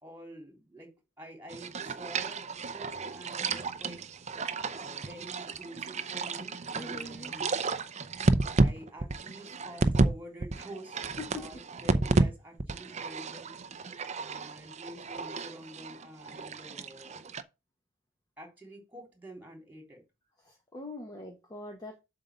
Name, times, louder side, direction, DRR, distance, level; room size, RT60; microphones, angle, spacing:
voice 1, 0.0-4.1 4.7-7.7 8.5-11.0 11.4-13.6 14.2-17.3 18.4-20.0, equal, 10° right, 3.1 m, -48 dB
sound 1, 1.5-10.1 10.4-12.3 12.6-17.4, right 3 dB, 35° right, 0.6 m, -31 dB
voice 2, 6.7-7.3 11.2-11.5 20.4-22.0, left 2 dB, 20° left, 1.2 m, -42 dB
7.7 x 3.9 x 6.8 m
head